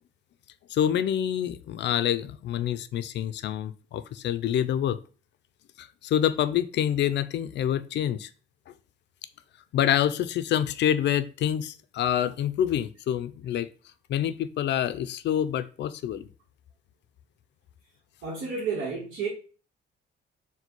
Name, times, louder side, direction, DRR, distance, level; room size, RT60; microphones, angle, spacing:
voice 1, 0.7-5.0 5.8-8.3 9.7-13.7 14.1-16.3, left 10 dB, 65° left, 0.4 m, -27 dB
voice 2, 18.2-19.3, right 5 dB, 85° right, 1.1 m, -31 dB
4.1 x 2.2 x 4.4 m
cardioid pair, 90°, 20 cm